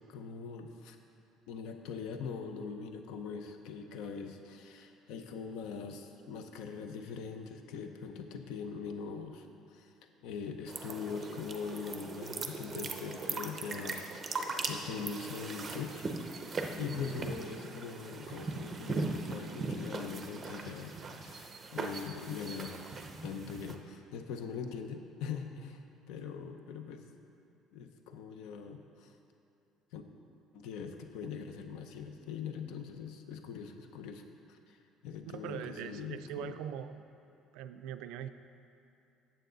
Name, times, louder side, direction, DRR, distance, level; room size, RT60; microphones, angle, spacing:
voice 1, 0.1-1.0 1.5-9.9 10.2-14.3 14.7-16.0 16.4-22.8 23.2-25.8 26.1-27.0 27.7-29.1 29.9-30.0 30.5-36.5, left 6 dB, 75° left, 6 dB, 0.6 m, -42 dB
sound 1, 10.7-23.8, right 3 dB, 20° right, 0.5 m, -39 dB
voice 2, 35.2-37.0 37.5-38.3, right 10 dB, 75° right, 10 dB, 0.3 m, -41 dB
9.1 x 7.5 x 3.9 m, 2.8 s
cardioid pair, 175°, 0 cm